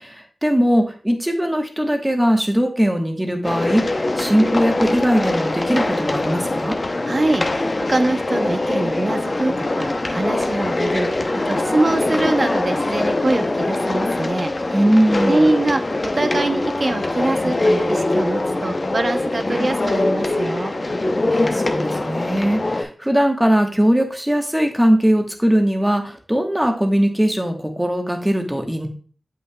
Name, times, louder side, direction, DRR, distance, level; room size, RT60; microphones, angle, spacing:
voice 1, 0.0-6.8 14.7-15.5 21.3-28.9, equal, 10° right, 3 dB, 1.2 m, -20 dB
sound 1, 3.4-22.8, left 2 dB, 45° left, 0.7 m, -22 dB
voice 2, 7.1-14.8 15.2-20.7, right 2 dB, 50° right, 8 dB, 0.6 m, -23 dB
7.8 x 5.7 x 2.3 m, 0.41 s
cardioid pair, 55°, 0 cm